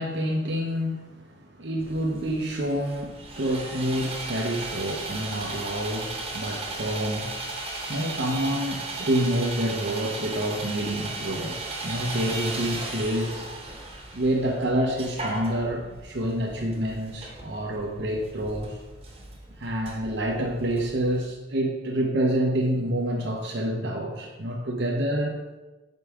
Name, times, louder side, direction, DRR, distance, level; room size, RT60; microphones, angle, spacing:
voice 1, 0.0-7.4 7.9-11.6 11.8-13.4 14.1-18.8 19.6-25.4, right 1 dB, 65° right, -1 dB, 0.8 m, -28 dB
Sawing, 1.8-21.2, right 2 dB, 30° right, 1.1 m, -36 dB
5.8 x 5.3 x 4.9 m, 1.2 s
head